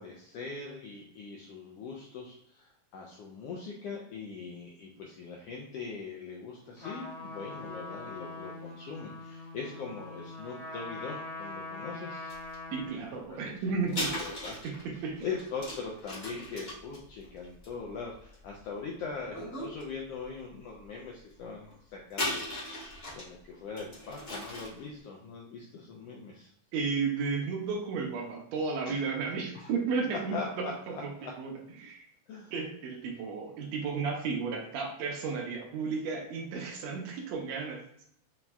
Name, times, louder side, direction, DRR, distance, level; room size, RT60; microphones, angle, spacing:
voice 1, 0.0-12.3 12.7-14.6 14.9-22.8 23.1-26.5 28.8-29.0 29.5-29.7 30.1-31.3 32.3-32.5, left 4 dB, 85° left, -1 dB, 1.4 m, -41 dB
Trumpet, 6.8-13.1, left 2 dB, 55° left, 0.6 m, -42 dB
sound 1, 12.3-12.5 13.9-18.6 19.2-19.8 20.2-20.3 22.1-23.3 23.8-24.8, left 1 dB, 35° left, 1.2 m, -37 dB
voice 2, 12.7-14.1 14.6-15.3 26.7-31.1 31.4-31.5 31.8-32.1 32.5-37.8, right 5 dB, 75° right, 2 dB, 1.8 m, -33 dB
6.0 x 2.7 x 2.3 m, 0.70 s
omnidirectional pair, 3.3 m